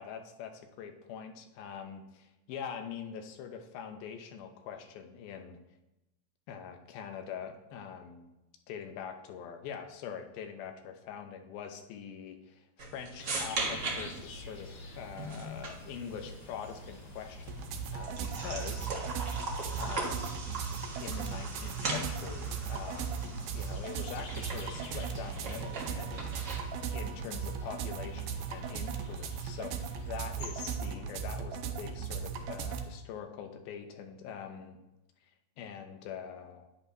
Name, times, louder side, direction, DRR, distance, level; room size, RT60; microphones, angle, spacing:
voice 1, 0.0-5.6 6.5-8.3 8.7-19.0 19.8-20.5 21.0-26.3 26.9-34.8 35.6-36.7, left 7 dB, 90° left, 5 dB, 2.7 m, -44 dB
sound 1, 12.8-26.8, right 2 dB, 55° right, 1.2 m, -40 dB
sound 2, 13.2-30.8, left 2 dB, 65° left, 2.5 m, -49 dB
sound 3, 17.5-32.8, right 7 dB, 85° right, 2.5 m, -37 dB
10.5 x 9.4 x 2.7 m, 0.96 s
omnidirectional pair, 4.1 m